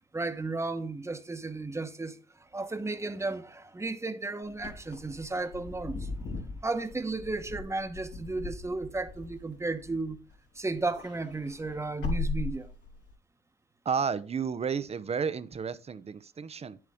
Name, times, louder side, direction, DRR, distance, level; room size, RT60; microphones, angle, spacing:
voice 1, 0.1-6.1 6.6-10.2 10.5-12.7, right 3 dB, 15° right, 1.1 m, -34 dB
Wind / Car, 4.5-10.3 10.7-13.1, left 3 dB, 75° left, 3.3 m, -38 dB
voice 2, 13.8-16.8, right 6 dB, 35° right, 0.7 m, -32 dB
9.9 x 7.7 x 3.6 m
cardioid pair, 105°, 19 cm